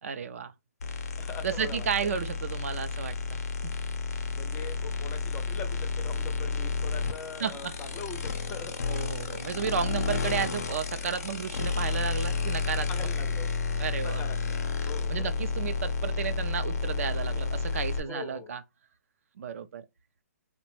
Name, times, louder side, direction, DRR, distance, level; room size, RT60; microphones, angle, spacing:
voice 1, 0.0-0.5 1.4-3.7 7.4-7.7 8.9-13.1 13.8-14.2 15.1-18.6 19.4-19.9, right 7 dB, 65° right, 0.4 m, -33 dB
sound 1, 0.8-18.0, left 5 dB, 90° left, 0.6 m, -31 dB
voice 2, 1.2-2.1 4.3-9.0 12.9-13.5 14.0-15.4 18.0-18.5, left 5 dB, 15° left, 0.4 m, -42 dB
3.0 x 2.1 x 3.0 m
hypercardioid pair, 155°, 8 cm